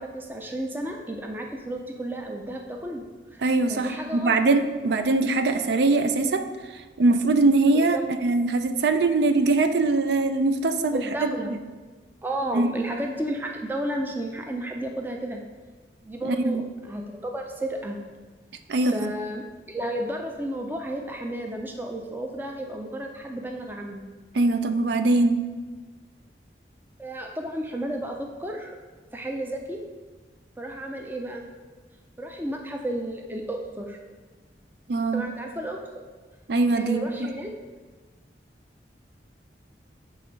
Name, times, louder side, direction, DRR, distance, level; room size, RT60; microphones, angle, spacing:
voice 1, 0.0-3.1 3.3-3.4 3.7-4.4 7.7-8.0 10.9-11.5 12.2-15.4 16.0-18.0 18.9-24.0 27.0-28.8 29.1-29.8 30.6-31.4 32.2-34.0 35.1-35.8 36.8-37.6, right 1 dB, 10° right, 2 dB, 0.4 m, -32 dB
voice 2, 3.4-6.5 7.0-11.5 12.5-12.7 16.2-16.6 18.7-19.1 24.3-25.4 34.9-35.3 36.5-37.3, right 3 dB, 75° right, 9 dB, 0.4 m, -22 dB
6.3 x 3.4 x 5.1 m, 1.3 s
head